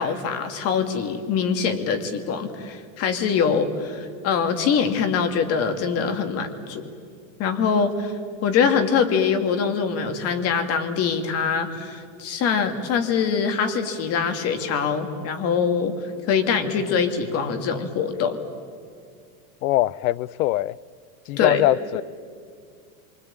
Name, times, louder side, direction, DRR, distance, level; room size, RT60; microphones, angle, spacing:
voice 1, 0.0-6.9 7.4-8.1 8.4-15.9 16.3-18.4 21.4-21.6, left 6 dB, 35° left, 7 dB, 2.4 m, -23 dB
voice 2, 19.6-20.8 21.3-22.0, left 15 dB, 85° left, 22 dB, 0.7 m, -22 dB
26.5 x 25.5 x 8.8 m, 2.2 s
supercardioid pair, 160°, 42 cm